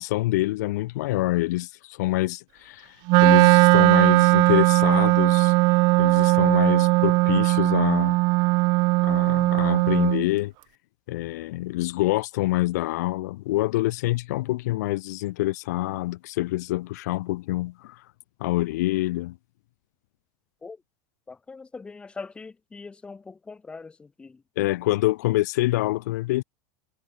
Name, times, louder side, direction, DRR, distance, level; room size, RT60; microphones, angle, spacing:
voice 1, 0.0-3.0 3.2-5.5 6.0-8.2 9.0-10.5 11.1-18.0 18.4-19.4 24.6-26.4, left 18 dB, 70° left, 4.4 m, -26 dB
Wind instrument woodwind instrument, 3.1-10.2, right 26 dB, 45° right, 1.7 m, -18 dB
voice 2, 21.3-24.4, left 4 dB, 10° left, 5.2 m, -41 dB
supercardioid pair, 155°, 9 cm